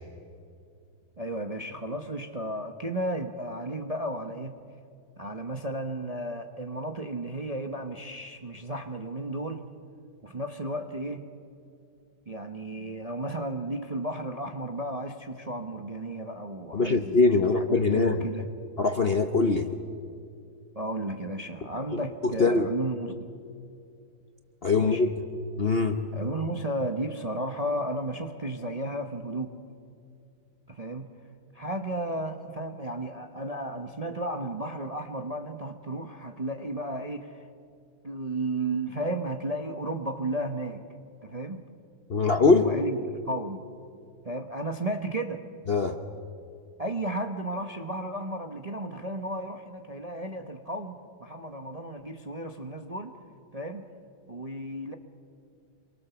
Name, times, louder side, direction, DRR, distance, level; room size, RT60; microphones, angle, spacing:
voice 1, 1.2-4.6 5.2-9.7 10.2-11.2 12.3-18.5 20.7-23.3 24.8-25.1 26.1-29.6 30.7-31.1 31.5-37.5 38.0-40.8 41.2-41.6 42.6-43.6 44.2-45.4 46.8-53.2 53.5-53.9 54.3-55.0, right 1 dB, 30° right, 5 dB, 0.8 m, -33 dB
voice 2, 16.7-18.2 18.8-19.7 21.9-22.6 24.6-25.1 25.6-26.0 42.1-42.7 45.7-46.0, left 4 dB, 45° left, 6 dB, 0.9 m, -22 dB
26.5 x 23.5 x 7.0 m, 2.4 s
omnidirectional pair, 2.0 m